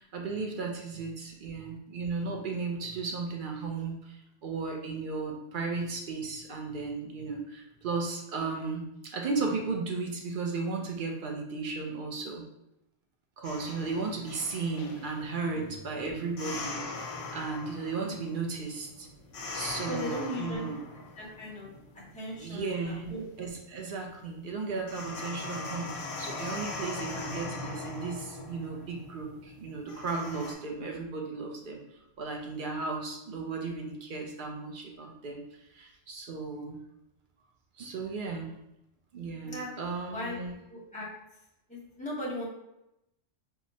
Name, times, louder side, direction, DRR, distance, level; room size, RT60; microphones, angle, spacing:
voice 1, 0.0-12.4 13.4-17.0 17.3-19.1 19.5-20.8 22.4-36.8 37.8-38.5 39.1-40.5, right 4 dB, 60° right, 1 dB, 0.6 m, -35 dB
sound 1, 13.4-30.5, left 3 dB, 80° left, 1.0 m, -41 dB
voice 2, 19.9-20.7 21.2-21.7 22.1-23.3 39.4-39.7 40.1-40.4 40.7-41.1 41.7-42.4, equal, 5° left, -5 dB, 0.7 m, -38 dB
4.6 x 2.1 x 2.6 m, 0.86 s
omnidirectional pair, 1.3 m